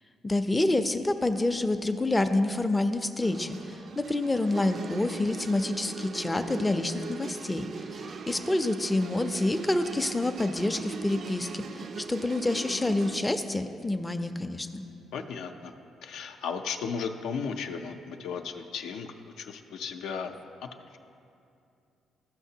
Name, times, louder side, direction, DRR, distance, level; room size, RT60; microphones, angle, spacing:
voice 1, 0.2-14.8, left 2 dB, 15° left, 7 dB, 0.4 m, -28 dB
sound 1, 3.2-13.2, right 5 dB, 55° right, 0.3 m, -40 dB
voice 2, 15.1-15.7 16.0-21.0, left 6 dB, 80° left, 5 dB, 0.4 m, -35 dB
13.0 x 5.7 x 2.8 m, 2.6 s
cardioid pair, 90°, 0 cm